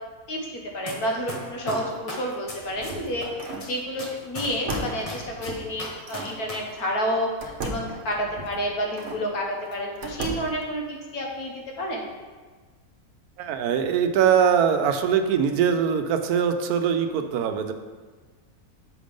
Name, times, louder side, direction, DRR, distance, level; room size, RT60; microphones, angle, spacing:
voice 1, 0.3-12.1, equal, 75° left, -1 dB, 1.7 m, -30 dB
sound 1, 0.9-1.0 1.3-3.2 3.6-6.5 6.8-6.9, left 2 dB, 25° left, 1.1 m, -35 dB
sound 2, 2.4-3.7 4.4-6.3 7.4-9.2 9.7-10.6, right 1 dB, 60° right, 1.1 m, -35 dB
voice 2, 13.4-17.7, right 7 dB, 80° right, 7 dB, 1.1 m, -22 dB
6.8 x 5.2 x 5.2 m, 1.4 s
omnidirectional pair, 1.6 m